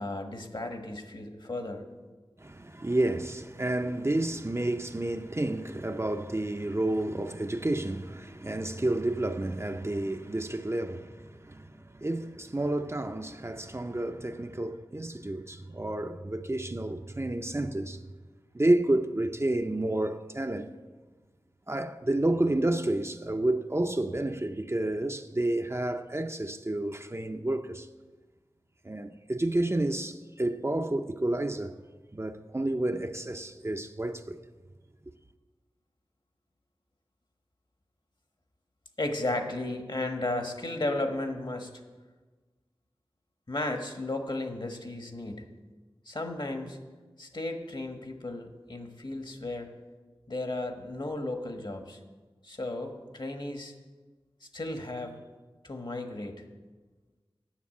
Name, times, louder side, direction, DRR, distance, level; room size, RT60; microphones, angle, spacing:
voice 1, 0.0-1.8 39.0-41.7 43.5-45.5 46.1-46.8 47.2-49.7 50.3-52.0 52.4-53.7 54.4-55.2 55.6-56.3, left 2 dB, 55° left, 1.4 m, -34 dB
voice 2, 2.4-18.0 18.5-20.7 21.7-27.9 28.8-31.7 32.1-34.4, right 1 dB, 30° right, 0.5 m, -30 dB
9.6 x 6.8 x 8.3 m
wide cardioid pair, 55°, 10 cm